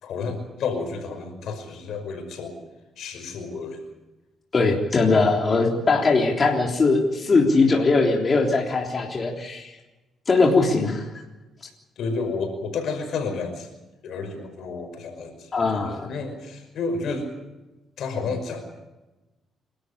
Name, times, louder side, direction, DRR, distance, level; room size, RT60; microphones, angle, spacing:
voice 1, 0.0-2.6 3.0-3.9 12.0-13.7 14.0-17.3 18.0-18.6, left 4 dB, 75° left, 6 dB, 5.5 m, -31 dB
voice 2, 4.5-9.7 10.3-11.1 15.5-16.1, left 3 dB, 35° left, 0 dB, 3.6 m, -20 dB
28.0 x 13.0 x 9.9 m, 1.1 s
cardioid pair, 90°, 0 cm